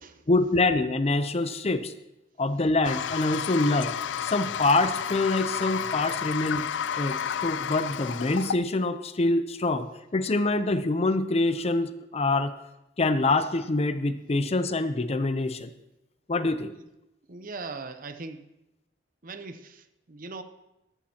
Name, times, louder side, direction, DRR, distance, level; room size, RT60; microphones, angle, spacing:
voice 1, 0.3-1.9 2.4-3.9 4.2-6.7 7.0-12.5 13.0-15.7 16.3-16.7, left 2 dB, 35° left, 11 dB, 0.6 m, -25 dB
Toilet flush, 2.8-8.6, left 8 dB, 80° left, 0.4 m, -31 dB
voice 2, 17.3-18.4 19.2-20.4, right 3 dB, 50° right, 9 dB, 0.8 m, -40 dB
14.0 x 13.0 x 2.9 m, 0.91 s
head